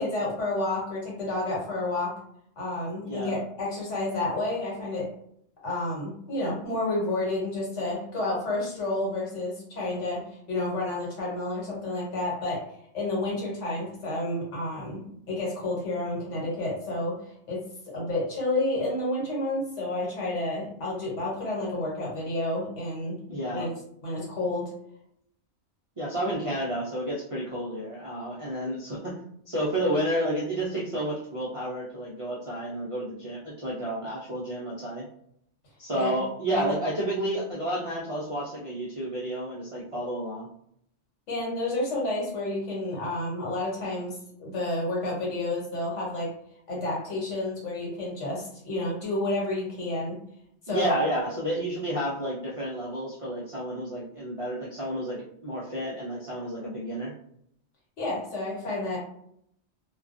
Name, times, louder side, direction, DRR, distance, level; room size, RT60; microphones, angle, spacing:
voice 1, 0.0-2.1 2.6-5.1 5.6-10.2 10.5-12.6 12.9-15.0 15.3-17.1 17.5-17.6 17.9-23.2 23.5-23.7 24.0-24.7 35.9-36.2 36.5-36.6 41.3-46.3 46.7-50.2 50.6-51.0 58.0-59.0, left 2 dB, 85° left, -4 dB, 1.3 m, -30 dB
voice 2, 3.1-3.4 23.3-23.7 26.0-29.2 29.5-35.0 35.8-40.5 50.7-57.1, right 1 dB, 55° right, -6 dB, 0.3 m, -31 dB
2.2 x 2.2 x 2.5 m, 0.70 s
omnidirectional pair, 1.2 m